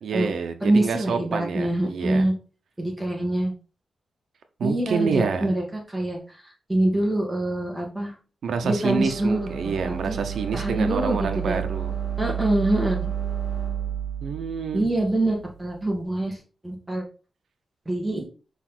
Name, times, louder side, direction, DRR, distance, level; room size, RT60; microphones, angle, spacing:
voice 1, 0.0-2.3 4.6-5.5 8.4-11.9 14.2-14.9, right 5 dB, 85° right, 7 dB, 0.9 m, -28 dB
voice 2, 0.6-2.3 2.8-3.5 4.6-8.2 8.6-10.2 10.5-11.6 12.2-13.0 14.7-17.0 17.9-18.2, right 1 dB, 10° right, -1 dB, 2.5 m, -25 dB
sound 1, 8.8-15.9, right 8 dB, 55° right, 2.2 m, -31 dB
6.8 x 5.1 x 4.4 m, 0.35 s
wide cardioid pair, 170°, 0 cm